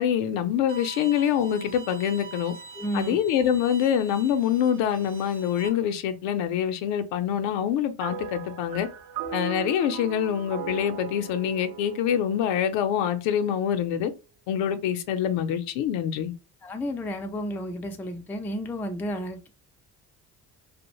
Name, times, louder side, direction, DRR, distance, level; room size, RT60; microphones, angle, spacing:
voice 1, 0.0-2.5 2.9-8.9 9.3-14.1 14.5-16.3, left 9 dB, 70° left, 0.6 m, -25 dB
Bowed string instrument, 0.7-5.7, right 4 dB, 75° right, 0.8 m, -43 dB
voice 2, 2.8-3.2 16.6-19.5, equal, 5° left, 0.3 m, -32 dB
sound 1, 8.0-13.5, right 7 dB, 50° right, 0.5 m, -38 dB
2.4 x 2.1 x 2.9 m
hypercardioid pair, 60°, 47 cm